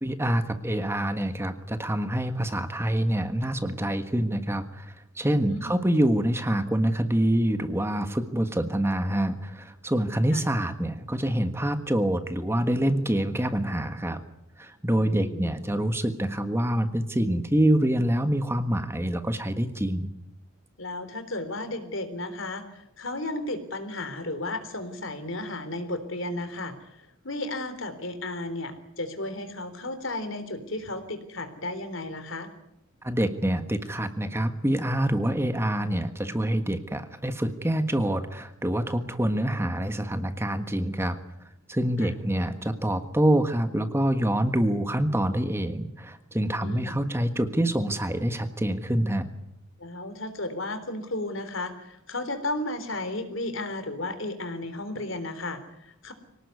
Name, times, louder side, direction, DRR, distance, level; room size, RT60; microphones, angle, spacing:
voice 1, 0.0-14.2 14.6-20.1 33.0-41.2 41.7-49.3, right 1 dB, 10° right, 8 dB, 1.5 m, -26 dB
voice 2, 5.5-5.8 10.3-10.4 15.0-15.5 20.8-27.0 27.2-32.5 42.0-42.1 46.6-47.0 49.8-56.1, left 2 dB, 65° left, 10 dB, 3.8 m, -34 dB
24.5 x 18.5 x 9.6 m, 0.82 s
head